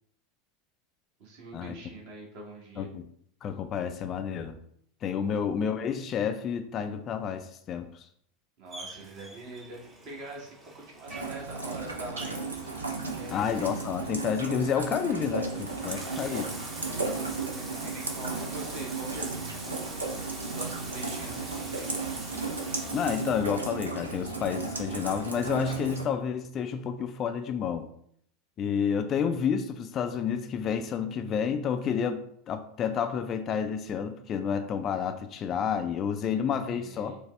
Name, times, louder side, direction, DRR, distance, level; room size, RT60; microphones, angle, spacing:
voice 1, 1.2-2.9 5.2-5.4 8.6-12.5 13.2-13.5 15.8-19.8 20.5-22.1 36.7-37.2, right 2 dB, 50° right, -2 dB, 1.1 m, -44 dB
voice 2, 3.4-4.6 5.0-8.0 13.3-16.4 22.9-27.9 28.6-37.2, left 7 dB, 35° left, 8 dB, 0.3 m, -30 dB
Bathtub (filling or washing), 8.7-23.5, right 2 dB, 20° right, 0.7 m, -44 dB
Rain, 11.1-26.0, right 3 dB, 80° right, 0.5 m, -35 dB
4.8 x 2.0 x 3.2 m, 0.65 s
figure-of-eight pair, 80°, 0 cm